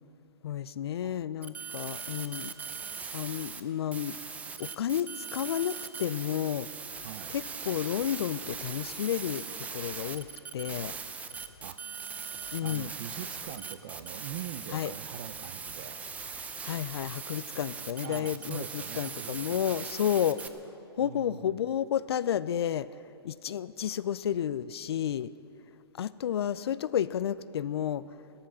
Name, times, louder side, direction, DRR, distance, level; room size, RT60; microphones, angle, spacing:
voice 1, 0.4-2.5 3.1-4.2 4.6-6.7 7.3-9.5 9.7-10.3 10.5-10.9 12.5-12.9 14.7-14.9 16.6-20.5 20.9-22.9 23.2-25.3 26.0-28.2, left 10 dB, 70° left, 17 dB, 0.5 m, -31 dB
voice 2, 1.0-1.3 7.0-7.4 11.6-11.8 12.6-16.1 18.0-19.9 21.0-21.6, right 10 dB, 50° right, 13 dB, 0.7 m, -43 dB
sound 1, 1.4-3.6 3.9-20.5, right 5 dB, 10° right, 0.5 m, -40 dB
sound 2, 6.9-9.0 9.3-9.4 9.8-11.7 12.0-14.9 15.2-17.8, left 6 dB, 40° left, 1.3 m, -60 dB
14.5 x 13.0 x 6.2 m, 2.8 s
hypercardioid pair, 135°, 14 cm